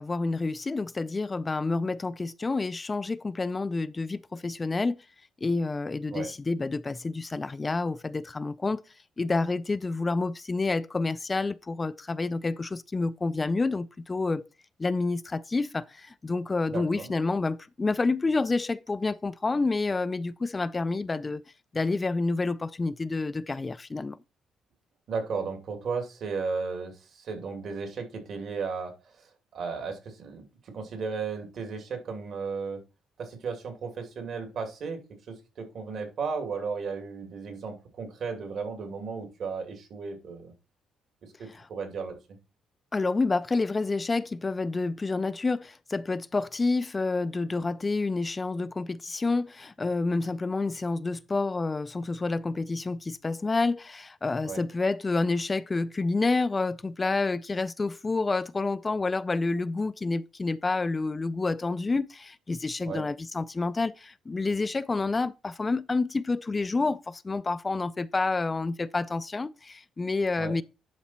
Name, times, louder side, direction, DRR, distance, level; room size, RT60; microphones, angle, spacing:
voice 1, 0.0-5.0 5.4-8.8 9.2-14.4 14.8-21.4 21.7-24.2 41.5-41.7 42.9-70.6, left 3 dB, 25° left, 0.3 m, -29 dB
voice 2, 16.7-17.1 25.1-28.9 29.5-30.4 30.7-32.8 33.2-35.0 35.3-40.5 41.4-42.1 54.4-54.6 62.9-63.0 70.4-70.5, right 5 dB, 65° right, 2.6 m, -34 dB
10.5 x 4.1 x 4.3 m
cardioid pair, 90°, 0 cm